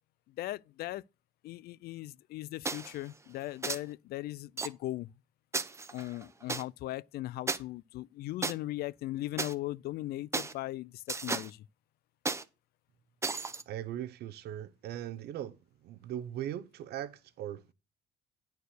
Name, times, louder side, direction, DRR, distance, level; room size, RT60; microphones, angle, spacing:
voice 1, 0.3-1.0 1.4-5.1 5.9-11.7, left 16 dB, 65° left, 0.4 m, -38 dB
sound 1, 2.7-3.0 3.6-3.8 4.6-4.7 5.5-6.6 7.5-7.6 8.4-8.5 9.4-9.5 10.3-10.5 11.1-11.5 12.3-12.4 13.2-13.6, right 3 dB, 15° right, 0.7 m, -34 dB
voice 2, 13.7-15.6 15.8-17.7, right 11 dB, 70° right, 0.8 m, -39 dB
9.4 x 4.5 x 6.5 m
cardioid pair, 110°, 17 cm